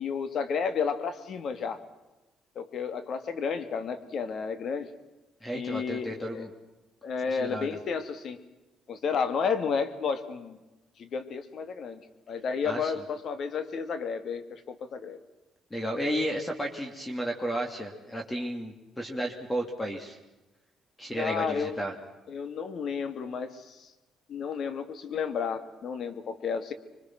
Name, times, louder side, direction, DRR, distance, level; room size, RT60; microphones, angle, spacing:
voice 1, 0.0-1.8 2.6-4.9 5.5-6.5 7.0-8.4 8.9-10.6 11.0-12.0 12.3-15.2 21.1-21.8 22.3-23.9 24.3-26.7, left 6 dB, 55° left, 10 dB, 2.4 m, -32 dB
voice 2, 5.4-6.5 7.3-7.8 12.7-12.9 15.7-20.2 21.0-21.9, equal, 15° left, 3 dB, 2.8 m, -33 dB
26.0 x 24.0 x 6.1 m, 1.1 s
cardioid pair, 115°, 0 cm